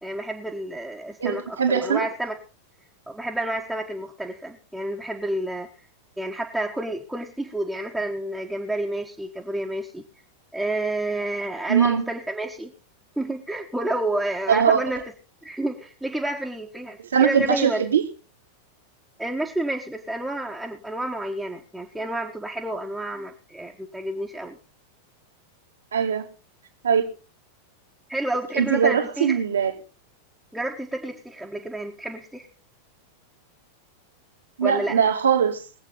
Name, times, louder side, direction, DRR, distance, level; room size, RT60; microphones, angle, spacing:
voice 1, 0.0-2.4 3.1-5.7 6.2-10.0 10.5-12.7 13.2-15.0 15.4-17.8 19.2-24.6 28.1-29.4 30.5-32.5 34.6-35.0, right 1 dB, ahead, 1.5 m, -30 dB
voice 2, 1.2-2.1 11.7-12.0 14.5-14.8 17.1-18.0 25.9-26.3 26.8-27.1 28.5-29.7 34.6-35.6, right 7 dB, 65° right, 2.0 m, -21 dB
21.0 x 8.2 x 3.9 m
figure-of-eight pair, 90°, 0 cm